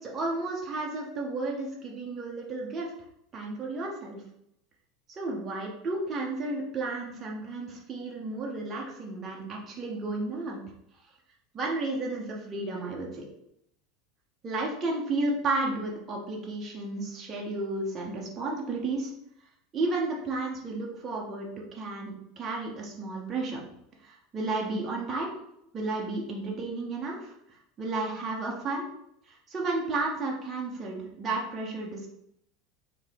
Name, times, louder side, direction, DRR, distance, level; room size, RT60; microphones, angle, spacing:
voice 1, 0.0-2.9 3.3-4.2 5.1-10.6 11.5-13.3 14.4-19.1 19.7-23.6 24.0-25.3 25.7-28.9 29.3-32.1, right 2 dB, 20° right, -2 dB, 0.6 m, -32 dB
3.6 x 2.7 x 3.3 m, 0.77 s
supercardioid pair, 160°, 0 cm